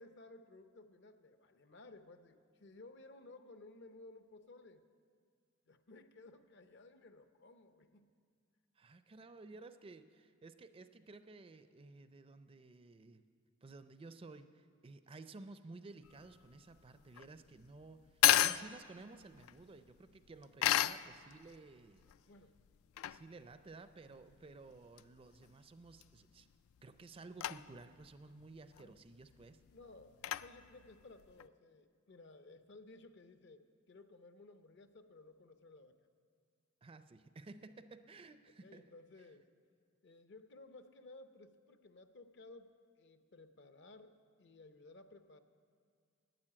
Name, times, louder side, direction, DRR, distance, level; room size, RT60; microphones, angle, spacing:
voice 1, 0.0-4.8 5.7-8.1 22.3-22.5 28.8-29.0 29.7-36.0 38.6-39.4 40.0-45.4, left 2 dB, 55° left, 9 dB, 0.7 m, -57 dB
voice 2, 8.8-13.2 13.6-22.0 23.0-26.5 26.8-29.6 36.8-38.9, right 3 dB, 25° right, 11 dB, 0.4 m, -54 dB
sound 1, 16.0-31.5, left 12 dB, 80° left, 0.3 m, -37 dB
12.0 x 9.3 x 8.7 m, 2.1 s
head